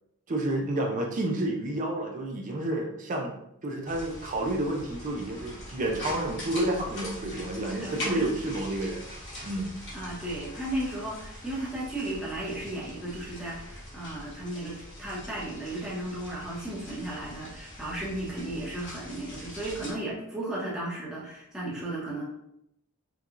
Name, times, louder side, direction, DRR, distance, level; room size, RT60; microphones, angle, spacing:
voice 1, 0.3-9.1 9.4-9.7, right 1 dB, 35° right, 1 dB, 0.4 m, -30 dB
sound 1, 3.9-19.9, left 1 dB, 50° left, 1.3 m, -42 dB
voice 2, 7.7-8.3 9.9-22.2, right 1 dB, 5° right, -7 dB, 0.9 m, -35 dB
4.6 x 2.3 x 2.5 m, 0.80 s
head